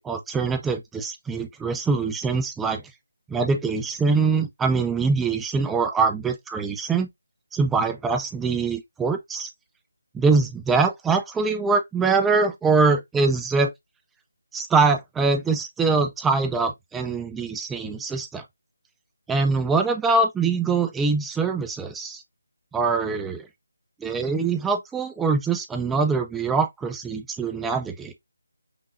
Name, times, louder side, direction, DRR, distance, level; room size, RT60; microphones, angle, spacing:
voice 1, 0.0-2.8 3.3-7.1 7.5-9.5 10.1-13.7 14.5-18.4 19.3-22.2 22.7-23.5 24.0-28.1, right 4 dB, 5° right, 0.5 m, -23 dB
5.1 x 3.7 x 2.4 m
figure-of-eight pair, 160°, 0 cm